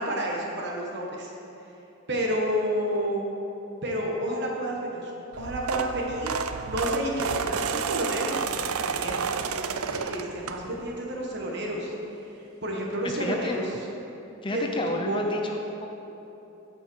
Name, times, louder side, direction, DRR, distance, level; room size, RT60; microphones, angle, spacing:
voice 1, 0.0-1.3 2.1-3.2 3.8-6.3 6.7-9.2 9.8-11.9 12.6-13.7 14.5-15.4, equal, 50° right, -1 dB, 1.5 m, -30 dB
sound 1, 5.3-11.0 11.4-11.7 12.9-13.0 13.3-13.4 13.7-13.8, right 6 dB, 90° right, 0.5 m, -31 dB
voice 2, 13.0-13.6 14.4-15.9, left 1 dB, 25° left, 2 dB, 0.6 m, -31 dB
15.0 x 5.6 x 4.7 m, 2.9 s
head